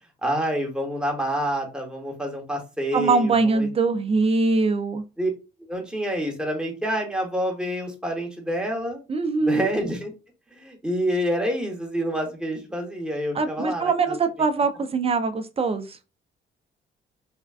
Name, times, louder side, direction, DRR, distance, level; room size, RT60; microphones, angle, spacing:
voice 1, 0.2-3.7 5.2-5.3 5.6-9.0 9.4-10.1 10.5-14.2, equal, 5° right, 1 dB, 0.9 m, -27 dB
voice 2, 2.9-5.0 9.1-9.7 13.3-16.0, right 4 dB, 30° right, 9 dB, 0.4 m, -22 dB
3.4 x 2.2 x 2.3 m, 0.30 s
cardioid pair, 90°, 20 cm